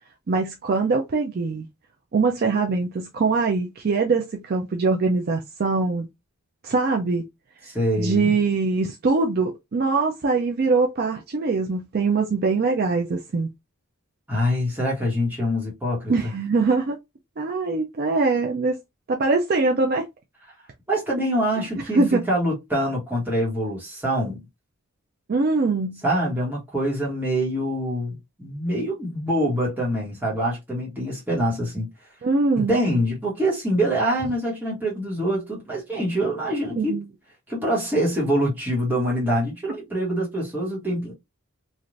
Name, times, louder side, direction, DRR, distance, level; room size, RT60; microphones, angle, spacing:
voice 1, 0.3-1.7 2.1-6.1 6.6-7.2 8.0-13.5 16.1-17.0 17.4-18.8 19.1-20.1 21.9-22.2 25.3-26.0 32.2-32.8 36.8-37.0, right 3 dB, 45° right, 0.4 m, -22 dB
voice 2, 7.7-8.3 14.3-16.1 20.9-24.4 26.0-31.9 32.6-37.0 37.5-41.1, equal, 10° right, 1.2 m, -25 dB
3.2 x 2.4 x 2.5 m
head